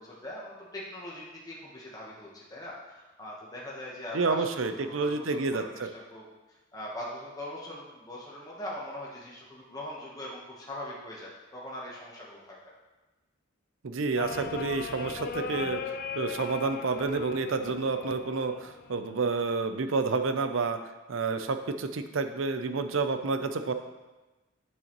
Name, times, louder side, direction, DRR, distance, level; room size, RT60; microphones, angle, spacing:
voice 1, 0.0-6.2 6.7-12.6, left 1 dB, 20° left, -5 dB, 1.1 m, -41 dB
voice 2, 4.1-5.9 13.8-15.8 16.2-20.8 21.1-23.7, right 4 dB, 75° right, 9 dB, 0.5 m, -29 dB
sound 1, 14.2-19.2 20.3-20.9, left 6 dB, 50° left, 0.4 m, -38 dB
8.8 x 6.4 x 3.0 m, 1.1 s
head